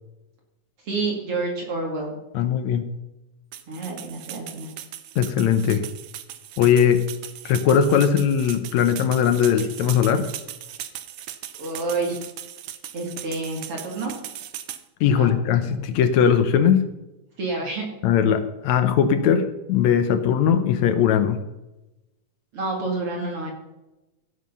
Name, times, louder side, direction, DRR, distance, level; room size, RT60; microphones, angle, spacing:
voice 1, 0.8-2.2 3.7-4.7 11.6-12.2 12.9-14.1 15.1-15.3 17.4-17.9 22.5-23.5, right 3 dB, 50° right, 0 dB, 3.0 m, -28 dB
voice 2, 2.3-2.9 5.2-5.8 6.6-7.1 7.5-10.2 15.0-16.9 18.0-21.4, left 8 dB, 70° left, 10 dB, 2.0 m, -19 dB
sound 1, 3.5-14.8, right 11 dB, 75° right, 1.3 m, -38 dB
16.0 x 7.4 x 5.4 m, 0.99 s
omnidirectional pair, 3.5 m